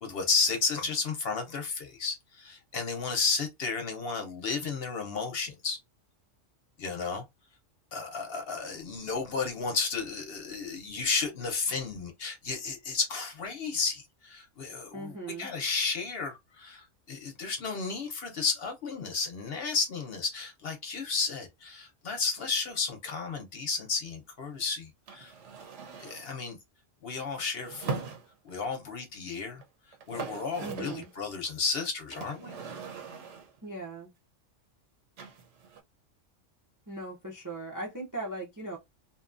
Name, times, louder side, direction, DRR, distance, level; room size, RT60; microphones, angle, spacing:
voice 1, 0.0-5.8 6.8-7.2 7.9-25.3 26.0-26.6 27.0-28.1 28.4-29.6 30.1-32.6, left 4 dB, 55° left, 0.8 m, -33 dB
voice 2, 14.9-15.5 30.6-31.1 33.6-34.1 36.9-38.8, right 2 dB, 25° right, 0.5 m, -38 dB
sound 1, 25.1-26.3 27.6-28.7 29.6-29.7 29.9-31.2 32.1-33.6 35.2-35.8, right 5 dB, 70° right, 1.0 m, -40 dB
2.7 x 2.2 x 2.4 m
omnidirectional pair, 1.3 m